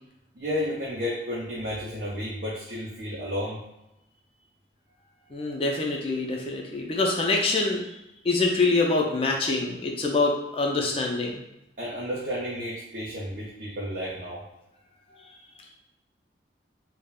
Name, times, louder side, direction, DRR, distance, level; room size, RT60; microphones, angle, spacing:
voice 1, 0.3-3.6 11.8-14.4, left 1 dB, 50° right, -6 dB, 0.5 m, -32 dB
voice 2, 5.3-7.8 8.2-11.4, left 3 dB, 30° left, 1 dB, 0.4 m, -25 dB
2.3 x 2.0 x 3.5 m, 0.87 s
head